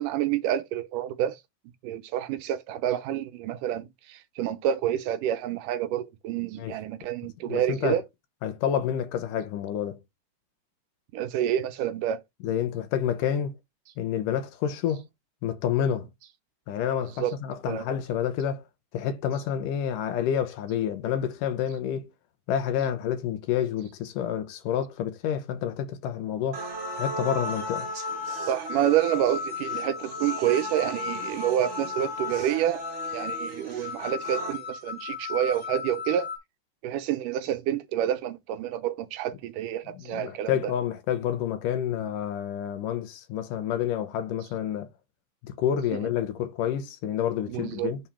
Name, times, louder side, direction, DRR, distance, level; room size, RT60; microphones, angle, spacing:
voice 1, 0.0-1.4 1.8-8.0 11.1-12.2 17.2-17.4 17.7-17.9 28.5-32.8 33.1-36.3 36.8-40.5 45.9-46.1 47.5-47.9, right 11 dB, 85° right, 2.5 m, -28 dB
voice 2, 7.5-8.0 8.4-10.0 12.4-13.5 14.0-15.0 15.4-16.1 16.7-18.6 18.9-22.1 22.5-26.7 26.9-27.9 39.9-44.9 45.4-48.0, left 9 dB, 80° left, 2.7 m, -29 dB
sound 1, 26.5-34.5, right 3 dB, 35° right, 1.1 m, -38 dB
sound 2, 26.6-36.4, left 6 dB, 40° left, 3.5 m, -36 dB
9.5 x 4.1 x 4.5 m
omnidirectional pair, 3.8 m